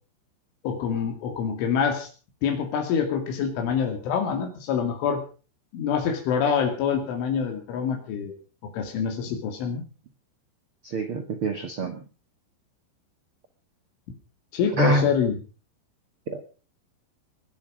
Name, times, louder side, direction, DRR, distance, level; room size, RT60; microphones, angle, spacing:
voice 1, 0.6-2.1 2.4-5.2 5.7-8.4 8.7-9.8 14.5-15.3, left 7 dB, 85° left, 4 dB, 4.9 m, -26 dB
voice 2, 10.8-12.0 14.7-15.1 16.3-16.5, right 2 dB, 65° right, 6 dB, 1.3 m, -26 dB
22.0 x 12.0 x 5.1 m, 0.38 s
omnidirectional pair, 5.4 m